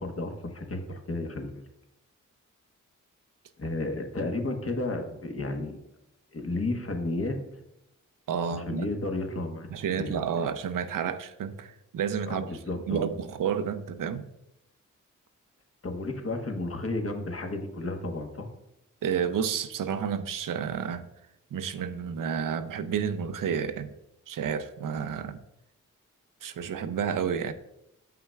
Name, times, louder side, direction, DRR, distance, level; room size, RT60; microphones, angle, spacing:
voice 1, 0.0-1.6 3.6-5.8 6.3-7.4 8.5-9.7 10.0-10.3 12.3-13.1 15.8-18.5, left 2 dB, 45° left, 4 dB, 1.1 m, -32 dB
voice 2, 8.3-8.9 9.7-12.5 12.9-14.2 19.0-21.1 21.5-23.9 24.3-25.4 26.4-27.5, right 7 dB, 75° right, 11 dB, 0.6 m, -30 dB
7.5 x 5.6 x 2.3 m, 0.84 s
cardioid pair, 55°, 32 cm